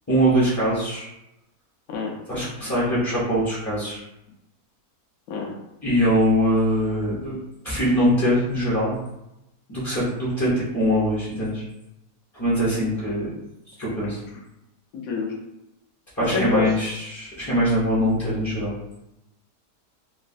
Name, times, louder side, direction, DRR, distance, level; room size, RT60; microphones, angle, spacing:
voice 1, 0.1-1.1 2.3-4.0 5.8-7.4 7.6-9.0 9.7-11.6 12.3-13.3 13.8-14.2 16.2-18.7, equal, 25° left, -9 dB, 0.3 m, -22 dB
voice 2, 14.9-15.3 16.3-16.7, left 4 dB, 75° left, -1 dB, 1.0 m, -26 dB
3.0 x 2.3 x 2.5 m, 0.89 s
omnidirectional pair, 1.6 m